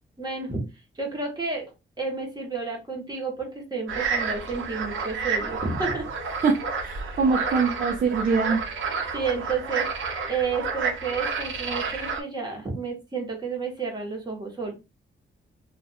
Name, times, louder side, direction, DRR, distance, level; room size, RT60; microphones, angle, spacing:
voice 1, 0.2-0.6 1.0-1.7 2.0-6.1 9.1-14.7, right 4 dB, 20° right, 1.2 m, -31 dB
sound 1, 3.9-12.2, right 5 dB, 70° right, 0.8 m, -30 dB
voice 2, 6.4-8.6, right 5 dB, 40° right, 0.5 m, -24 dB
2.5 x 2.4 x 4.1 m
wide cardioid pair, 155°, 21 cm